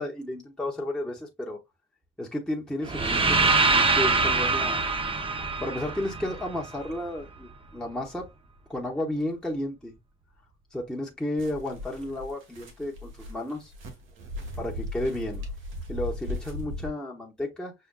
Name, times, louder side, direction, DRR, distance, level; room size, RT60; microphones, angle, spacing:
voice 1, 0.0-1.6 2.2-3.4 3.7-4.8 5.6-8.3 8.7-9.9 10.7-13.7 14.6-15.5 15.9-17.7, left 1 dB, 5° left, 1.0 m, -32 dB
sound 1, 2.8-6.9, right 3 dB, 25° right, 0.7 m, -24 dB
sound 2, 11.4-16.9, left 1 dB, 80° right, 1.3 m, -37 dB
6.5 x 2.2 x 2.2 m
cardioid pair, 90°, 20 cm